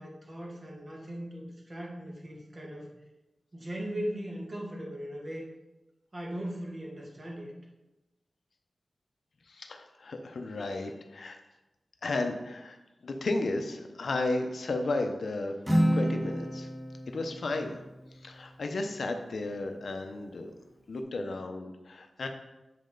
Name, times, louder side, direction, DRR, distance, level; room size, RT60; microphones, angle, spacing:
voice 1, 0.0-2.9 3.5-5.5 6.1-7.5, equal, 35° right, -1 dB, 1.7 m, -38 dB
voice 2, 9.5-11.4 12.0-12.8 13.0-15.5 15.9-16.7 17.1-17.8 18.2-20.5 20.9-22.3, left 2 dB, 70° left, 5 dB, 0.7 m, -33 dB
Acoustic guitar, 15.7-19.3, equal, 10° right, 1.3 m, -31 dB
7.7 x 5.3 x 3.9 m, 1.0 s
wide cardioid pair, 120°, 0 cm